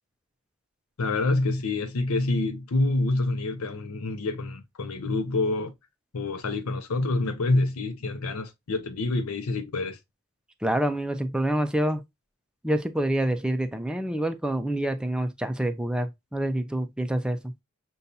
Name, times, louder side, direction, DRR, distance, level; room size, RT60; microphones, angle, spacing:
voice 1, 1.0-5.7 6.1-10.0, left 2 dB, 80° left, 0.6 m, -27 dB
voice 2, 10.6-12.0 12.6-17.5, right 1 dB, 5° right, 0.3 m, -27 dB
6.7 x 2.3 x 2.6 m
head